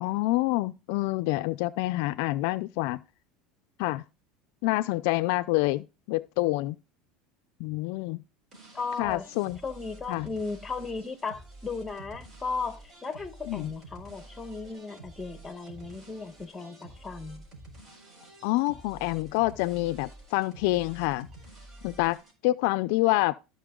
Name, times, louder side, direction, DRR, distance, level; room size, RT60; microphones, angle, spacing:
voice 1, 0.0-3.0 3.8-4.0 4.6-6.8 7.6-8.2 9.0-9.6 10.1-10.3 13.5-13.7 18.4-21.3 21.8-22.2 22.4-23.3, left 19 dB, 70° left, 0.4 m, -27 dB
sound 1, 8.5-22.3, right 2 dB, 40° right, 4.4 m, -49 dB
voice 2, 8.7-9.2 9.6-17.4, left 4 dB, 15° left, 1.2 m, -36 dB
13.5 x 5.2 x 3.8 m
supercardioid pair, 120°, 0 cm